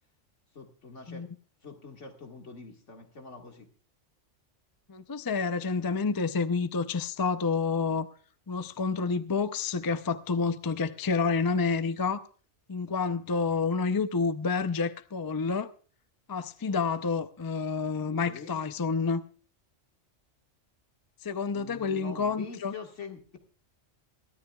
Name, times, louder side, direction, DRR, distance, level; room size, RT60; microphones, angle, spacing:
voice 1, 0.5-1.3 1.6-3.7 18.1-18.6 21.5-23.2, left 4 dB, 70° left, 2.3 m, -45 dB
voice 2, 4.9-8.1 8.5-12.3 12.7-15.7 16.3-19.2 21.2-22.7, left 4 dB, 30° left, 0.4 m, -29 dB
23.5 x 13.0 x 2.3 m
omnidirectional pair, 1.3 m